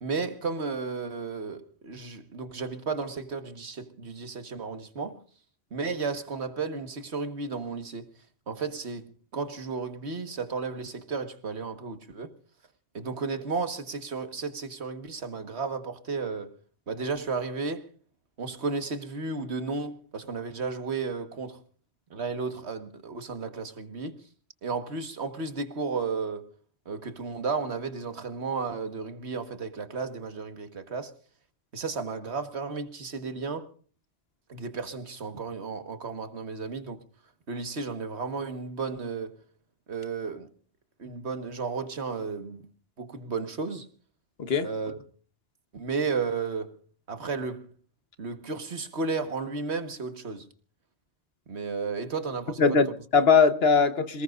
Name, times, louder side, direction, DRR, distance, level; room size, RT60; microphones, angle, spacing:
voice 1, 0.0-5.2 5.7-8.1 8.5-12.3 12.9-16.5 16.9-17.9 18.4-21.6 22.1-24.2 24.6-26.5 26.9-31.1 31.7-33.7 34.5-37.0 37.5-39.4 39.9-40.5 41.0-42.7 43.0-43.9 44.6-45.0 45.7-46.7 47.1-47.7 48.2-50.5 51.5-52.8, right 4 dB, 75° right, 1.8 m, -33 dB
voice 2, 52.6-54.2, left 5 dB, 65° left, 1.3 m, -21 dB
28.0 x 19.0 x 2.5 m
omnidirectional pair, 1.1 m